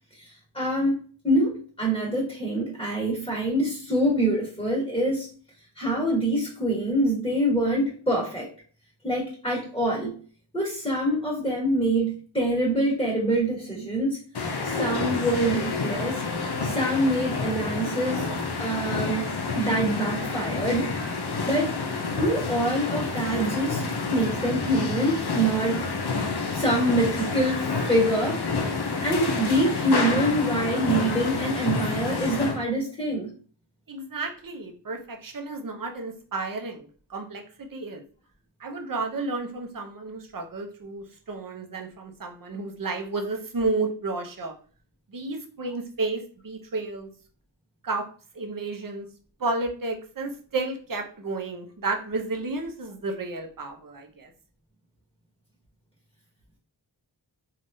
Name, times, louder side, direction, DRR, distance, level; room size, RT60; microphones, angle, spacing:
voice 1, 0.2-5.3 5.8-8.5 9.0-10.1 10.5-14.2 14.6-16.2 16.6-18.2 18.6-19.3 19.5-20.9 21.4-21.7 22.2-23.8 24.1-25.8 26.5-28.4 29.0-33.3, right 1 dB, 10° left, -5 dB, 1.3 m, -25 dB
sound 1, 14.3-32.6, left 4 dB, 60° left, 0.6 m, -29 dB
voice 2, 33.9-38.0 38.6-44.6 45.1-47.1 47.8-49.1 49.4-54.3, right 3 dB, 45° right, 5 dB, 0.6 m, -32 dB
3.3 x 2.3 x 2.6 m, 0.41 s
wide cardioid pair, 50°, 46 cm